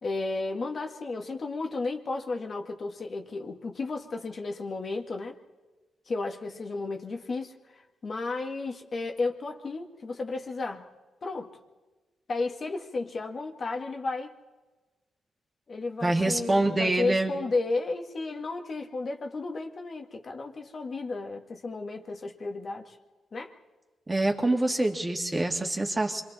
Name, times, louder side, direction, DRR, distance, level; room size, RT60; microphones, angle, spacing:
voice 1, 0.0-5.4 6.1-10.9 11.2-11.5 12.3-14.3 15.7-23.0 23.3-23.5, left 3 dB, 50° left, 3 dB, 1.9 m, -33 dB
voice 2, 16.0-17.4 24.1-26.2, right 2 dB, 20° right, 3 dB, 2.2 m, -25 dB
26.5 x 23.0 x 4.3 m, 1.2 s
cardioid pair, 80°, 0 cm